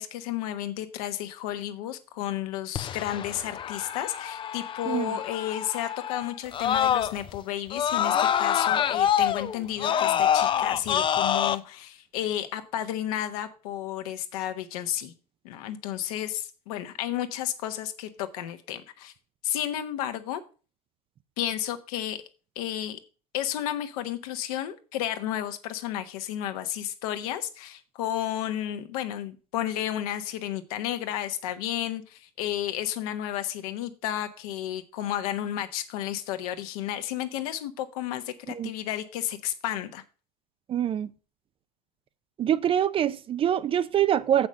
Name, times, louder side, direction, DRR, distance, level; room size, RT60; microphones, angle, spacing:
voice 1, 0.0-15.1 15.4-19.1 19.4-20.4 21.4-22.2 22.5-23.0 23.3-40.0, left 12 dB, 65° left, 1.2 m, -32 dB
Screaming, 2.8-7.4 7.7-11.6, left 9 dB, 25° left, 0.5 m, -26 dB
voice 2, 4.9-5.2 38.5-38.7 40.7-41.1 42.4-44.5, right 10 dB, 25° right, 0.5 m, -25 dB
7.4 x 5.9 x 6.5 m
hypercardioid pair, 95°, 20 cm